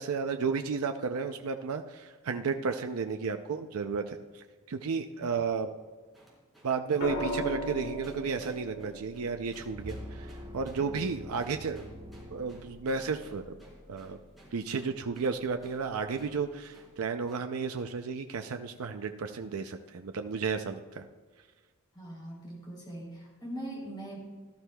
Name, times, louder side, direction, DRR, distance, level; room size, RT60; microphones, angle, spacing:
voice 1, 0.0-5.7 6.6-11.9 12.3-13.6 13.9-14.2 14.5-21.1, right 5 dB, 80° right, 6 dB, 0.5 m, -33 dB
sound 1, 6.1-15.4 15.6-15.8 16.2-16.4 16.7-16.9 17.3-17.5, right 1 dB, ahead, 3.9 m, -56 dB
sound 2, 7.0-11.1 12.8-13.2, equal, 50° left, 2.0 m, -38 dB
sound 3, 9.7-13.2, equal, 25° right, 1.2 m, -45 dB
voice 2, 21.9-24.2, right 1 dB, 20° left, -3 dB, 3.3 m, -41 dB
17.5 x 12.5 x 2.3 m, 1.4 s
head